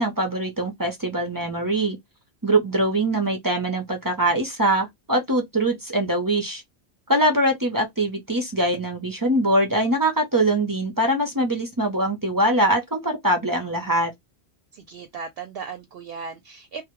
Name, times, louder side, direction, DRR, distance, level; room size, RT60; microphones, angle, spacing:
voice 1, 0.0-2.0 2.4-6.6 7.1-14.1, right 1 dB, 30° right, 0.4 m, -23 dB
voice 2, 14.7-16.8, right 5 dB, 65° right, 0.7 m, -36 dB
2.1 x 2.0 x 2.9 m
omnidirectional pair, 1.2 m